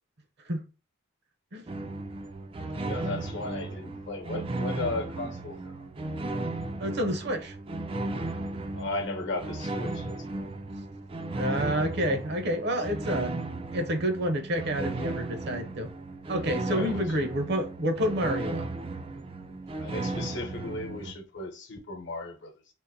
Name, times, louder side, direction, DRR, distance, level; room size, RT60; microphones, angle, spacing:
sound 1, 1.7-21.1, right 2 dB, 30° right, 0.4 m, -35 dB
voice 1, 2.8-5.9 8.7-10.5 16.7-17.0 19.8-22.5, left 2 dB, 60° left, 0.9 m, -36 dB
voice 2, 6.8-7.6 11.3-13.3 13.7-15.9 16.3-18.7, equal, 55° right, 0.7 m, -29 dB
3.8 x 2.5 x 2.7 m
head